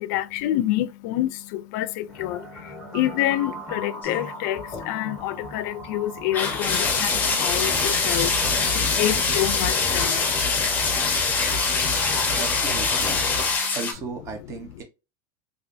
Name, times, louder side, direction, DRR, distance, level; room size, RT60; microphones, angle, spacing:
voice 1, 0.0-2.4 2.9-7.1 7.4-8.3 8.7-10.2, left 14 dB, 65° left, 0.4 m, -27 dB
sound 1, 2.1-10.4, equal, 5° right, 1.3 m, -40 dB
sound 2, 4.0-4.2 4.6-4.9 6.3-13.9, left 4 dB, 15° left, 0.7 m, -23 dB
voice 2, 12.2-13.4 13.7-14.8, right 4 dB, 30° right, 0.7 m, -36 dB
3.2 x 2.4 x 2.5 m
supercardioid pair, 150°, 10 cm